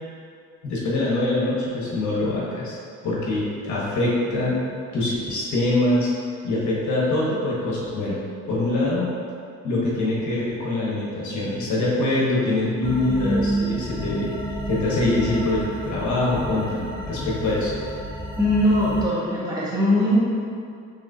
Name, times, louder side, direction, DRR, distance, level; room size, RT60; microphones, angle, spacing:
voice 1, 0.6-2.8 3.0-4.6 4.9-6.1 6.4-8.2 8.5-9.1 9.6-14.3 14.7-17.7, left 2 dB, 70° left, -6 dB, 1.2 m, -24 dB
sound 1, 12.8-19.1, right 1 dB, 15° left, 0.5 m, -30 dB
voice 2, 18.4-20.2, equal, 15° right, -9 dB, 1.4 m, -20 dB
4.7 x 3.3 x 2.7 m, 2.3 s
cardioid pair, 90°, 30 cm